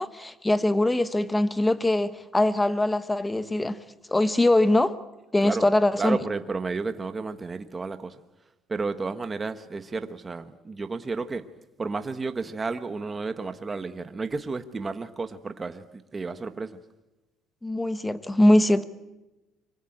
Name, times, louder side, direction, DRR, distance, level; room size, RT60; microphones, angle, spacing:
voice 1, 0.0-3.8 4.1-4.9 5.3-6.2 17.6-18.8, left 1 dB, 10° left, 1.1 m, -22 dB
voice 2, 6.0-8.2 8.7-11.4 11.8-16.8, right 4 dB, 20° right, 1.3 m, -32 dB
25.0 x 24.0 x 8.7 m
cardioid pair, 160°, 0 cm